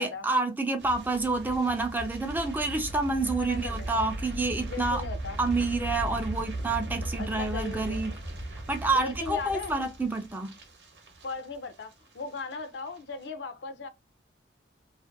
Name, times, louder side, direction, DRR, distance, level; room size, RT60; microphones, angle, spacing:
voice 1, 0.0-5.0 5.4-8.1 8.7-10.5, right 3 dB, 10° right, 0.3 m, -28 dB
sound 1, 0.8-11.9 12.2-12.6 12.9-13.0, right 1 dB, 75° right, 0.8 m, -37 dB
voice 2, 3.4-4.1 4.7-5.4 7.2-8.0 8.9-9.8 11.2-13.9, left 4 dB, 80° left, 0.5 m, -37 dB
2.5 x 2.5 x 2.5 m
head